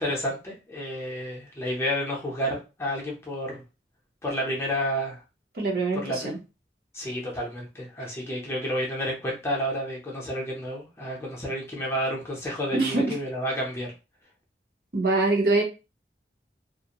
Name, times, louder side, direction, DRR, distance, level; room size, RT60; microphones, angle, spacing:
voice 1, 0.0-3.6 4.2-5.2 5.9-6.4 6.9-13.9, equal, 15° left, -2 dB, 0.6 m, -30 dB
voice 2, 5.5-6.4 12.7-13.2 14.9-15.6, right 2 dB, 60° right, -1 dB, 0.9 m, -24 dB
2.4 x 2.1 x 2.9 m, 0.29 s
head